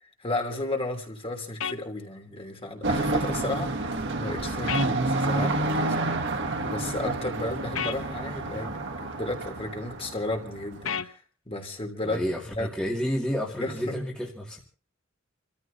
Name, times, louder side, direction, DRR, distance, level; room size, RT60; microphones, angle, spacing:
voice 1, 0.0-6.1 6.6-12.2 12.5-12.7 13.6-14.0, left 2 dB, 30° left, 3 dB, 3.1 m, -33 dB
sound 1, 1.6-1.8 4.7-4.9 7.8-8.0 10.9-11.1, left 7 dB, 75° left, 0.8 m, -30 dB
sound 2, 2.8-10.9, right 2 dB, 60° right, 1.5 m, -29 dB
voice 2, 12.0-14.6, equal, 5° left, -3 dB, 2.4 m, -30 dB
29.5 x 14.5 x 2.8 m, 0.36 s
head